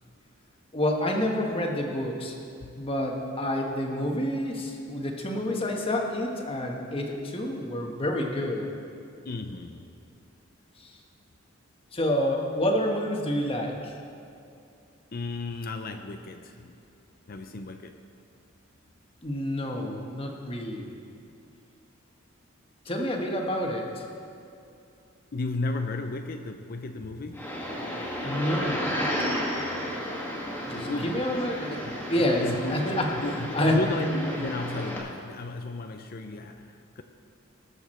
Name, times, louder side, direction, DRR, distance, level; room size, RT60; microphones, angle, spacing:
voice 1, 0.7-2.3 2.8-8.7 11.9-13.9 19.2-20.8 22.9-23.9 28.2-28.9 30.7-32.4 32.7-33.1 33.5-33.8, left 1 dB, 25° left, 1 dB, 1.2 m, -28 dB
voice 2, 9.2-9.8 15.1-16.8 17.3-18.0 25.3-27.5 30.7-31.3 31.8-37.0, left 2 dB, 45° left, 6 dB, 0.5 m, -34 dB
sound 1, 27.3-35.0, equal, 10° left, 1.7 m, -33 dB
19.5 x 7.1 x 4.3 m, 2.6 s
head